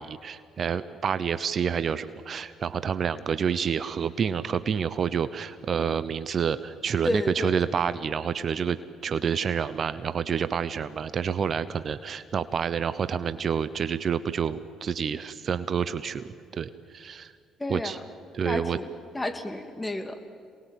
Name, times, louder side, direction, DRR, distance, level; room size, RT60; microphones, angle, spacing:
voice 1, 0.0-8.8 9.0-17.3 17.7-18.0 18.3-18.8, right 7 dB, 50° right, 14 dB, 0.9 m, -28 dB
voice 2, 7.0-7.5 17.6-18.0 18.4-20.2, left 1 dB, 15° left, 7 dB, 2.6 m, -31 dB
27.0 x 20.0 x 9.2 m, 2.2 s
hypercardioid pair, 55°, 0 cm